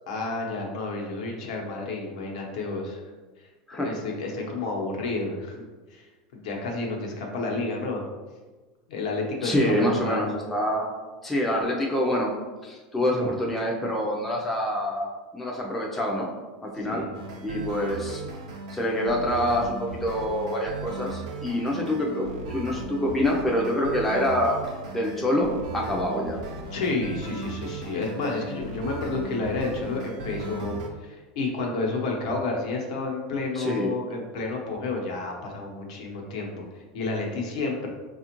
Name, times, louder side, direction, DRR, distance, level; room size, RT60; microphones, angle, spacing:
voice 1, 0.1-3.0 3.4-3.5 3.8-5.5 5.9-6.1 6.3-8.0 8.9-10.2 16.7-17.1 26.7-37.9, left 3 dB, 75° left, 0 dB, 0.9 m, -30 dB
voice 2, 9.4-10.9 11.2-12.3 12.6-16.3 16.6-17.0 17.4-18.2 18.7-24.6 24.9-26.4 33.5-33.9, equal, 5° left, -2 dB, 0.4 m, -26 dB
sound 1, 17.1-30.9, right 2 dB, 85° right, 0.6 m, -37 dB
5.0 x 2.4 x 2.9 m, 1.3 s
supercardioid pair, 170°, 4 cm